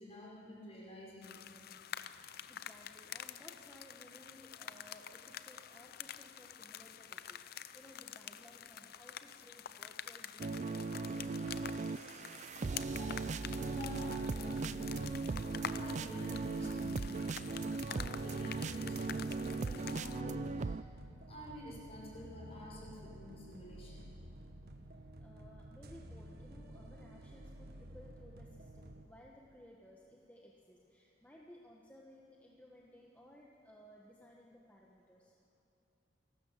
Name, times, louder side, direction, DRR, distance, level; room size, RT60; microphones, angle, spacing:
voice 1, 0.0-1.4 13.0-13.3 13.5-15.2 15.6-17.3 17.9-20.8 21.3-24.0, equal, 35° left, -4 dB, 5.2 m, -49 dB
sound 1, 1.2-20.2, left 9 dB, 55° left, 0.6 m, -48 dB
voice 2, 2.5-11.7 25.2-35.3, equal, 10° left, -2 dB, 1.3 m, -59 dB
sound 2, 10.4-20.8, right 3 dB, 40° right, 0.4 m, -38 dB
sound 3, 14.9-29.1, right 1 dB, 55° right, 1.4 m, -52 dB
28.5 x 12.5 x 7.4 m, 2.7 s
head